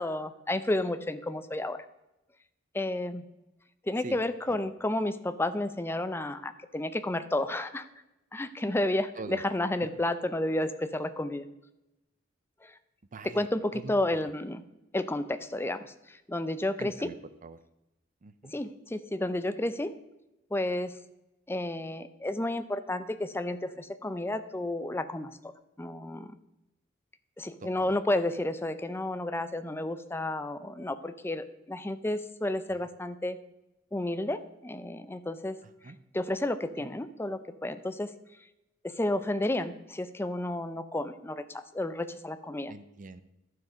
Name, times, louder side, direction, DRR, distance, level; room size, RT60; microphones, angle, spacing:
voice 1, 0.0-1.8 2.7-3.2 3.8-7.9 8.3-11.5 12.6-12.7 13.3-14.6 14.9-15.9 16.3-17.1 18.5-19.9 20.5-20.9 21.5-25.3 25.8-26.3 27.4-33.4 33.9-35.6 36.1-38.1 38.8-42.7, left 1 dB, 10° left, 11 dB, 0.5 m, -31 dB
voice 2, 13.1-14.0 16.8-17.2 17.4-17.6 18.2-18.5 27.6-27.9 32.7-32.9 35.6-36.0 36.8-36.9 42.7-43.2, right 3 dB, 40° right, 13 dB, 0.5 m, -44 dB
11.5 x 6.3 x 5.0 m, 0.92 s
head